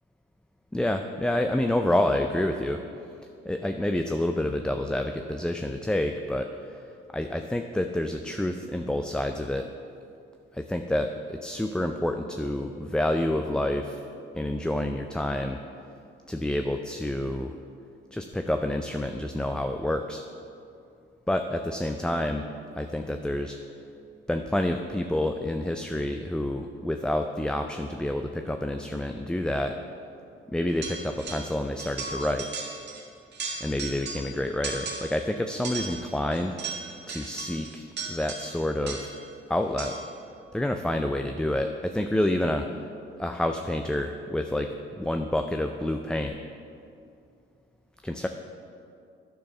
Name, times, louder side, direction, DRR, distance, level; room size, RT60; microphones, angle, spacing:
voice 1, 0.7-2.8 3.4-6.8 7.1-9.7 10.5-14.0 14.3-15.6 16.3-17.5 18.1-20.2 21.3-22.5 22.8-23.6 24.3-29.7 30.5-32.5 33.6-36.6 37.1-39.1 39.5-40.0 40.5-42.7 43.2-46.4 48.0-48.3, left 1 dB, 5° left, 5 dB, 0.4 m, -28 dB
sound 1, 30.8-31.5 31.8-33.0 33.3-34.3 34.6-35.2 35.6-39.3 39.8-40.2, right 4 dB, 60° right, 1.6 m, -37 dB
10.0 x 4.7 x 6.0 m, 2.5 s
cardioid pair, 90°, 20 cm